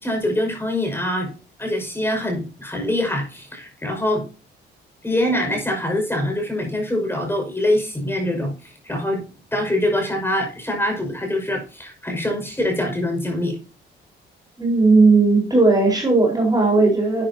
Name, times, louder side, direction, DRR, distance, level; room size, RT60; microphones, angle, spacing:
voice 1, 0.0-1.3 1.6-4.2 5.0-9.2 9.5-13.6, left 1 dB, 10° left, 3 dB, 5.6 m, -24 dB
voice 2, 14.6-17.3, right 3 dB, 20° right, 0 dB, 4.4 m, -16 dB
11.5 x 9.6 x 2.8 m, 0.34 s
cardioid pair, 90°, 20 cm